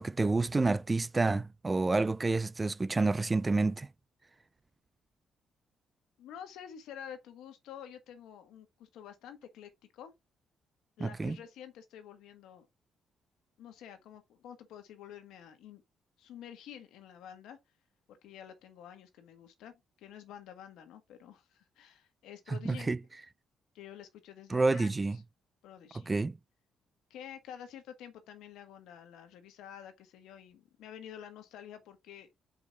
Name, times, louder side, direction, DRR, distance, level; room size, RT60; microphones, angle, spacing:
voice 1, 0.0-3.9 11.0-11.4 22.7-23.0 24.5-25.2 26.1-26.4, right 3 dB, 25° right, 0.4 m, -29 dB
voice 2, 6.2-10.1 11.0-12.7 13.6-15.8 16.2-17.6 18.1-22.9 23.7-25.2 25.6-26.1 27.1-32.3, left 9 dB, 85° left, 1.5 m, -49 dB
5.1 x 4.9 x 4.0 m
cardioid pair, 90°, 0 cm